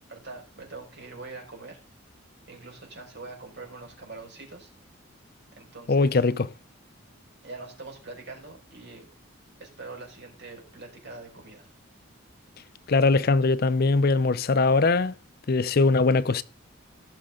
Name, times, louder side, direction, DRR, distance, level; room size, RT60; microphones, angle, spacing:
voice 1, 0.1-1.8 2.5-4.7 5.5-6.2 7.4-9.0 9.6-11.7, right 3 dB, 55° right, 5.1 m, -43 dB
voice 2, 5.9-6.5 12.9-15.1 15.5-16.4, left 3 dB, 45° left, 0.5 m, -21 dB
17.0 x 6.3 x 3.7 m
head